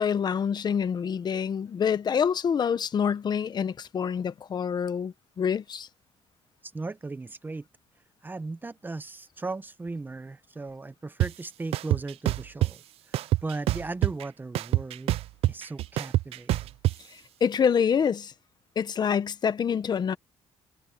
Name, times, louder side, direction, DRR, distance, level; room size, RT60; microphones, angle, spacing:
voice 1, 0.0-5.9 17.1-18.3 18.8-20.2, left 7 dB, 45° left, 1.2 m, -26 dB
voice 2, 6.7-7.7 8.2-15.1 15.5-16.7, right 3 dB, 20° right, 1.0 m, -37 dB
sound 1, 11.2-11.3 11.7-12.7 13.1-14.2 14.5-16.9, right 15 dB, 75° right, 0.5 m, -25 dB
cardioid pair, 100°, 10 cm